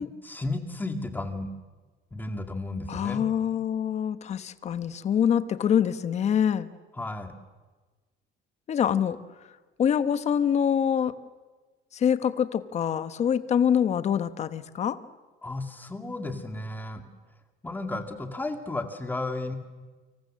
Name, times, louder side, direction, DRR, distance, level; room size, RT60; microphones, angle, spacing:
voice 1, 0.2-1.5 2.1-3.2 7.0-7.3 15.4-17.0 17.6-19.5, left 2 dB, 10° left, 6 dB, 2.2 m, -33 dB
voice 2, 2.9-6.7 8.7-9.2 9.8-11.1 11.9-15.0, left 8 dB, 30° left, 12 dB, 1.1 m, -25 dB
29.5 x 25.5 x 7.5 m, 1.3 s
cardioid pair, 170°, 21 cm